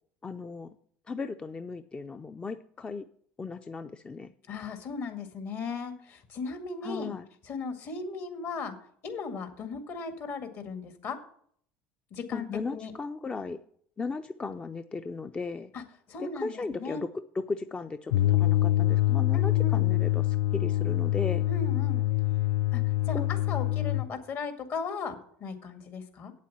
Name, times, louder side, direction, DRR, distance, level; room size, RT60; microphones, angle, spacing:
voice 1, 0.2-0.8 1.1-3.1 3.4-4.3 6.8-7.3 12.3-13.6 14.0-15.7 16.2-17.1 17.3-21.5 23.1-23.3, left 4 dB, 20° left, 9 dB, 0.5 m, -36 dB
voice 2, 4.5-7.2 7.5-8.8 9.0-11.2 12.1-12.9 15.7-15.8 16.1-17.0 19.3-19.9 21.5-22.1 22.7-26.3, left 4 dB, 55° left, 7 dB, 2.0 m, -37 dB
sound 1, 18.1-24.1, left 16 dB, 75° left, 0.4 m, -25 dB
8.4 x 7.5 x 7.2 m, 0.63 s
supercardioid pair, 95°, 5 cm